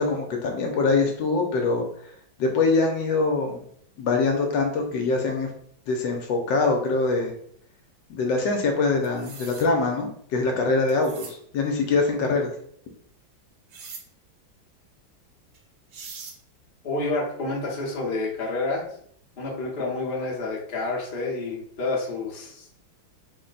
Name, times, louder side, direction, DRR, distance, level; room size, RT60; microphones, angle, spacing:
voice 1, 0.0-2.1 2.4-3.6 4.0-5.5 5.9-7.3 8.1-12.5, left 3 dB, 75° left, 3 dB, 1.2 m, -24 dB
sound 1, 9.0-9.7 10.9-11.3 13.7-14.0 15.5-15.6 15.9-16.4, right 5 dB, 65° right, 1.3 m, -41 dB
voice 2, 16.8-18.8 19.4-22.8, left 2 dB, 45° left, -2 dB, 0.7 m, -29 dB
4.3 x 2.1 x 3.9 m, 0.65 s
omnidirectional pair, 2.2 m